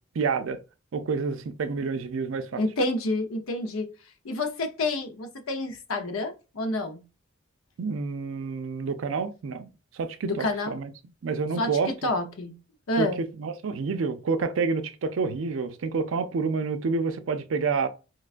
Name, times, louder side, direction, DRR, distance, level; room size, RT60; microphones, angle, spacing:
voice 1, 0.2-0.6 0.9-2.6 7.8-9.7 9.9-10.9 11.2-12.1 13.0-17.9, right 4 dB, 65° right, 0.4 m, -28 dB
voice 2, 2.5-3.9 4.2-7.0 10.2-10.8 11.6-12.5 12.9-13.2, left 2 dB, 85° left, 0.7 m, -28 dB
4.4 x 2.2 x 2.4 m
head